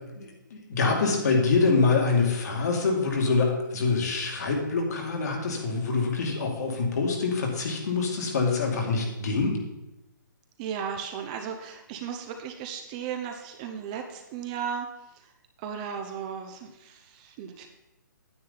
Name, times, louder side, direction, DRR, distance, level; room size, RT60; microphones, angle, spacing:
voice 1, 0.2-9.6, left 4 dB, 55° left, 1 dB, 2.3 m, -25 dB
voice 2, 10.6-14.9 15.1-15.3 15.6-17.7, right 7 dB, 20° right, 5 dB, 0.6 m, -35 dB
9.6 x 8.3 x 4.1 m, 0.96 s
hypercardioid pair, 160°, 11 cm